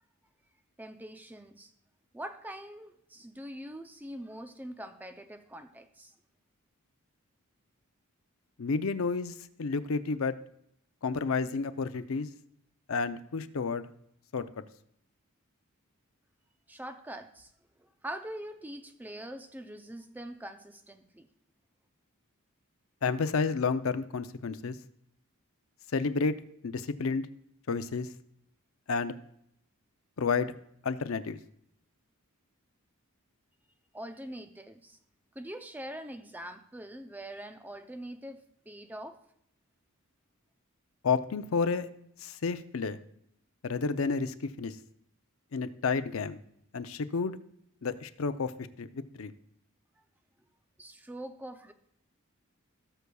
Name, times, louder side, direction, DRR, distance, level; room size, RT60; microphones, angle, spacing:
voice 1, 0.8-1.7 2.1-6.1 16.7-17.5 17.8-21.3 33.9-35.0 35.4-39.2 50.8-51.7, right 1 dB, 10° right, 8 dB, 0.5 m, -43 dB
voice 2, 8.6-10.4 11.0-12.3 12.9-13.9 14.3-14.6 23.0-24.8 25.9-26.3 26.6-27.3 27.7-28.1 28.9-29.1 30.2-30.5 30.8-31.4 41.0-41.9 42.2-43.0 43.6-44.8 45.5-46.4 46.7-47.4 47.8-48.5 48.8-48.9 49.1-49.3, left 4 dB, 70° left, 11 dB, 0.6 m, -30 dB
17.5 x 6.7 x 2.3 m, 0.73 s
head